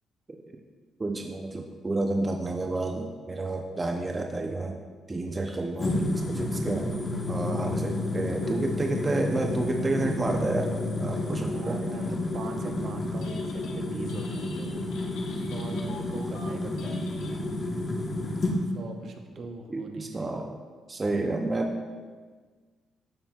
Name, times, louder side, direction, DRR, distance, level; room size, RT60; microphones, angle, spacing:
voice 1, 1.0-4.7 5.1-6.9 7.3-10.7 11.0-11.8 19.7-20.6 20.9-21.8, right 2 dB, 25° right, 2 dB, 0.5 m, -30 dB
sound 1, 5.8-18.6, left 2 dB, 35° left, 1.1 m, -30 dB
voice 2, 11.4-14.8 15.5-17.0 18.7-20.4, right 3 dB, 60° right, 4 dB, 0.8 m, -41 dB
Telephone, 13.0-13.8 14.1-17.8, left 3 dB, 85° left, 0.9 m, -47 dB
13.0 x 4.3 x 2.3 m, 1.5 s
cardioid pair, 90°, 0 cm